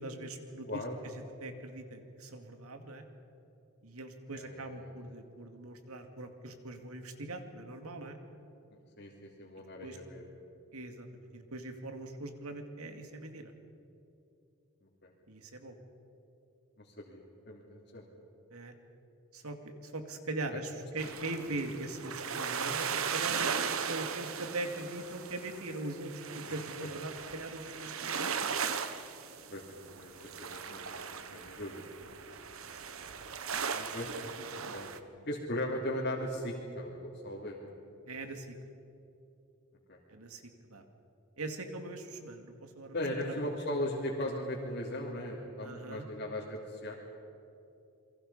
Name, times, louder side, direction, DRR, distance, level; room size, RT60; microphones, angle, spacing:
voice 1, 0.0-0.8 1.1-3.0 3.8-8.2 9.8-10.0 10.7-11.1 11.3-13.5 15.3-15.8 18.5-18.7 19.3-28.4 31.1-31.4 33.7-33.9 34.6-34.7 38.1-38.5 40.1-40.4 40.7-40.8 41.4-42.9 43.2-43.3 45.6-46.1, right 2 dB, 85° right, 6 dB, 2.3 m, -41 dB
voice 2, 0.7-1.0 4.3-4.9 9.0-10.2 15.0-15.1 16.8-18.0 20.5-20.6 21.5-21.6 26.5-26.9 29.5-30.8 31.3-31.9 33.9-34.1 34.5-34.9 35.3-37.7 39.9-40.0 42.9-46.9, left 1 dB, 50° left, -5 dB, 3.1 m, -38 dB
sound 1, 21.0-35.0, right 6 dB, 70° right, 1.2 m, -38 dB
29.0 x 23.0 x 5.6 m, 2.8 s
head